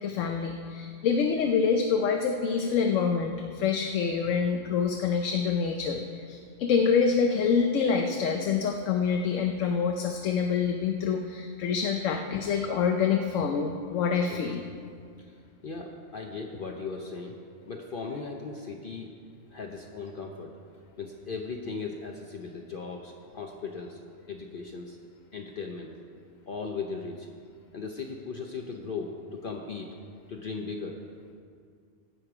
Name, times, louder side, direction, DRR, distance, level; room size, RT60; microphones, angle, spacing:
voice 1, 0.0-14.6, left 6 dB, 85° left, 4 dB, 1.0 m, -26 dB
voice 2, 15.6-19.1 19.5-20.6 21.0-24.0 24.3-25.0 25.3-25.9 26.5-27.3 27.7-29.9 30.3-31.0, left 4 dB, 50° left, 1 dB, 0.8 m, -37 dB
17.0 x 6.4 x 4.9 m, 2.2 s
omnidirectional pair, 1.3 m